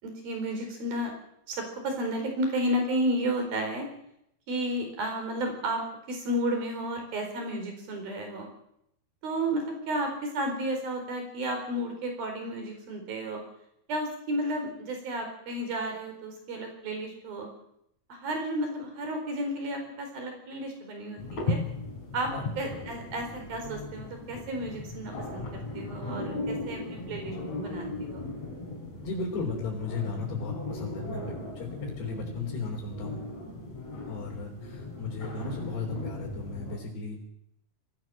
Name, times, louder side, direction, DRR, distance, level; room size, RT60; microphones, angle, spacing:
voice 1, 0.0-1.1 1.5-3.9 4.5-5.8 6.1-8.5 9.2-13.4 13.9-17.5 18.1-21.6 22.1-27.4 27.6-28.2, right 1 dB, 65° right, 4 dB, 6.1 m, -32 dB
sound 1, 21.2-36.8, left 2 dB, 40° left, 6.8 m, -37 dB
voice 2, 29.0-33.2 34.1-37.2, left 4 dB, 85° left, -3 dB, 5.9 m, -35 dB
21.5 x 16.5 x 7.8 m, 0.75 s
omnidirectional pair, 4.6 m